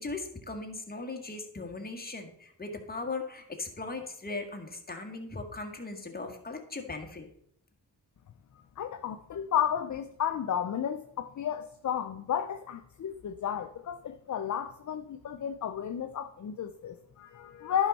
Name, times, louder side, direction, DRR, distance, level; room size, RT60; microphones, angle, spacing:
voice 1, 0.0-7.3, left 3 dB, 20° left, 1.7 m, -38 dB
voice 2, 8.8-17.9, left 9 dB, 45° left, 0.6 m, -33 dB
10.5 x 5.5 x 4.1 m
cardioid pair, 65°, 42 cm